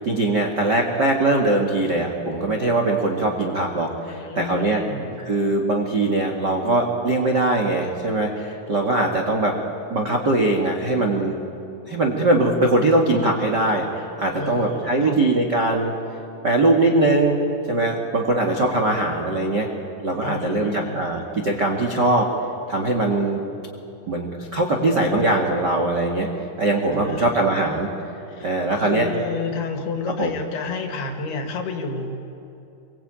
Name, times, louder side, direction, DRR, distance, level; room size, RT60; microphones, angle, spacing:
voice 1, 0.0-4.8 5.2-9.5 9.9-11.3 11.9-15.9 16.4-17.3 17.7-19.7 20.0-22.3 22.7-23.4 24.1-26.3 26.6-27.9 28.4-29.1 30.2-30.3, right 2 dB, 50° right, 2 dB, 1.3 m, -21 dB
voice 2, 4.1-5.2 14.4-15.2 20.2-21.0 26.9-27.8 28.3-32.1, left 4 dB, 60° left, 4 dB, 3.6 m, -31 dB
27.0 x 23.0 x 9.0 m, 2.8 s
omnidirectional pair, 5.5 m